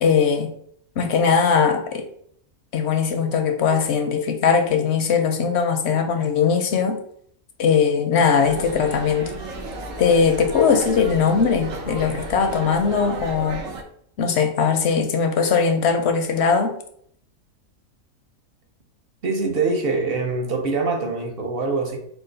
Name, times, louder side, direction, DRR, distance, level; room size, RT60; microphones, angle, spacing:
voice 1, 0.0-0.5 1.0-2.0 2.7-7.0 7.6-9.4 10.0-13.6 14.2-16.7, left 6 dB, 65° left, 5 dB, 0.7 m, -20 dB
sound 1, 8.4-13.8, right 2 dB, 70° right, 1.1 m, -33 dB
voice 2, 19.2-22.0, right 3 dB, 50° right, 2 dB, 0.8 m, -24 dB
4.9 x 2.4 x 3.8 m, 0.66 s
omnidirectional pair, 1.5 m